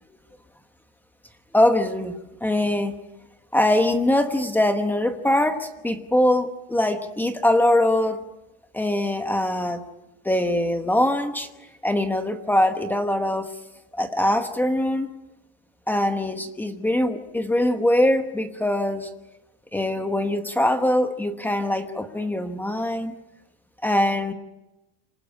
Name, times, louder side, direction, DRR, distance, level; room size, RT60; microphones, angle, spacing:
voice 1, 1.5-3.0 3.5-8.2 8.7-9.8 10.2-11.5 11.8-13.5 13.9-15.1 15.9-19.1 19.7-23.1 23.8-24.3, left 1 dB, 5° left, 7 dB, 1.0 m, -22 dB
26.5 x 20.0 x 9.8 m, 0.97 s
cardioid pair, 180°, 37 cm